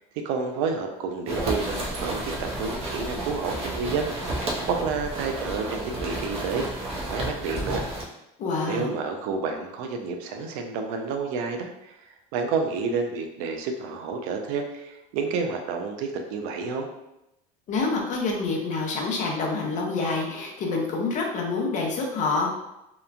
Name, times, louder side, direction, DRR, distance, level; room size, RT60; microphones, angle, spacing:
voice 1, 0.2-7.8 8.7-12.0 12.3-16.9, right 5 dB, 85° right, 4 dB, 0.4 m, -30 dB
sound 1, 1.3-8.0, right 1 dB, 35° right, 0.6 m, -31 dB
voice 2, 8.4-8.9 17.7-22.5, left 3 dB, 45° left, 0 dB, 0.6 m, -27 dB
2.9 x 2.1 x 2.4 m, 0.89 s
cardioid pair, 125°, 18 cm